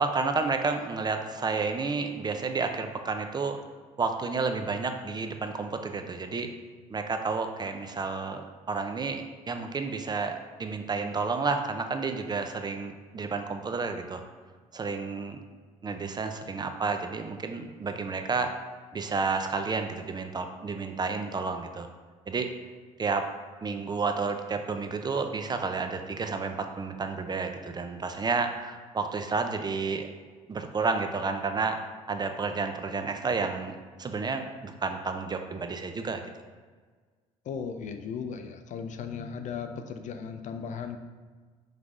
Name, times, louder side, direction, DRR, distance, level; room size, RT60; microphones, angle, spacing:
voice 1, 0.0-3.6 4.0-6.5 6.9-14.2 14.7-15.4 15.8-18.5 18.9-21.9 22.3-22.5 23.0-23.3 23.6-30.1 30.5-31.8 32.1-36.2, right 4 dB, 30° right, 6 dB, 0.4 m, -31 dB
voice 2, 37.4-41.0, left 6 dB, 55° left, 7 dB, 0.4 m, -36 dB
5.1 x 3.2 x 2.5 m, 1.5 s
supercardioid pair, 75°, 15 cm